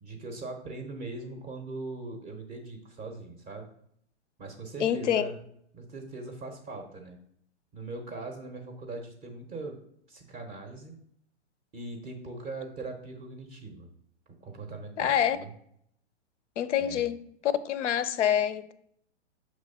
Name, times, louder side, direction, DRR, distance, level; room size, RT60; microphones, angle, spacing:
voice 1, 0.0-3.7 4.4-5.4 5.7-7.2 7.7-9.8 10.1-10.9 11.7-13.9 14.4-15.5 16.8-17.0, right 3 dB, 20° right, 0.5 m, -40 dB
voice 2, 4.8-5.3 15.0-15.4 16.6-18.7, left 10 dB, 85° left, 0.6 m, -27 dB
6.2 x 3.1 x 5.2 m
hypercardioid pair, 145°, 35 cm